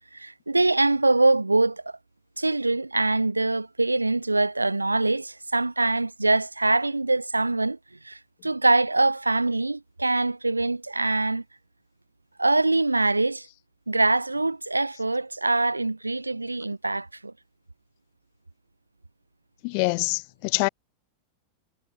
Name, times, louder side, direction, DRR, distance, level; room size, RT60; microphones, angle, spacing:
voice 1, 0.1-1.9 2.4-7.8 8.0-11.4 12.4-13.5 13.9-17.3, right 2 dB, 85° right, 0.4 m, -23 dB
voice 2, 19.6-20.7, left 40 dB or more, 45° left, 0.3 m, -25 dB
figure-of-eight pair, 90°, 0 cm